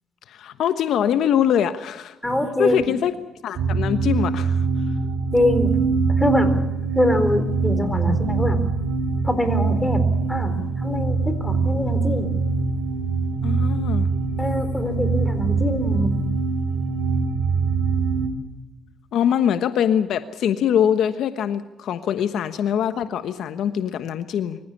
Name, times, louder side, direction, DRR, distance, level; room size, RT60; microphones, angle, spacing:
voice 1, 0.3-2.2 2.6-3.1 3.4-4.7 13.4-14.1 19.1-24.6, left 9 dB, 75° left, 10 dB, 1.2 m, -23 dB
voice 2, 2.2-2.9 5.3-5.8 6.2-6.5 6.9-8.6 9.2-10.0 10.3-12.3 14.4-16.1, left 1 dB, 10° left, 9 dB, 4.1 m, -23 dB
sound 1, 3.6-18.3, right 4 dB, 70° right, 4.3 m, -23 dB
25.0 x 15.5 x 8.5 m, 0.98 s
cardioid pair, 90°, 0 cm